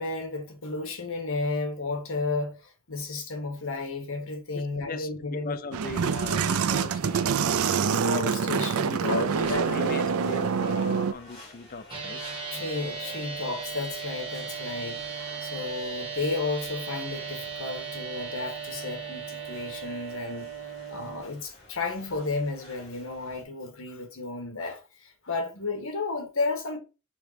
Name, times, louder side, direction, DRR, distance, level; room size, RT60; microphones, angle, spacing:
voice 1, 0.0-5.6 7.8-9.9 12.5-15.0 15.4-20.5 20.9-26.8, left 3 dB, 65° left, 1.6 m, -32 dB
voice 2, 4.5-8.1 8.9-12.2 15.3-15.7, left 4 dB, 45° left, 0.5 m, -39 dB
sound 1, 5.7-11.1, right 6 dB, 80° right, 0.5 m, -26 dB
sound 2, 8.6-23.4, left 1 dB, 30° left, 3.0 m, -51 dB
sound 3, 11.9-21.2, right 6 dB, 25° right, 1.9 m, -37 dB
4.9 x 3.8 x 5.1 m
head